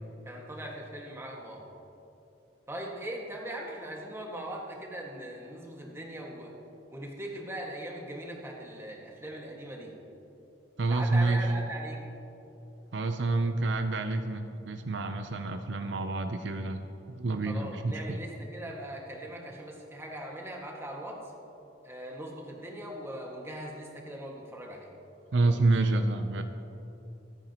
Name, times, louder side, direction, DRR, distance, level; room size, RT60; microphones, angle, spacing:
voice 1, 0.2-1.6 2.7-6.5 6.9-9.9 10.9-12.0 17.5-21.2 21.8-24.9 25.4-25.6, right 1 dB, 15° right, -1 dB, 1.8 m, -40 dB
voice 2, 10.8-11.5 12.9-16.8 17.1-18.2 25.3-26.4, right 2 dB, 75° right, 7 dB, 0.6 m, -28 dB
25.5 x 8.9 x 3.0 m, 3.0 s
head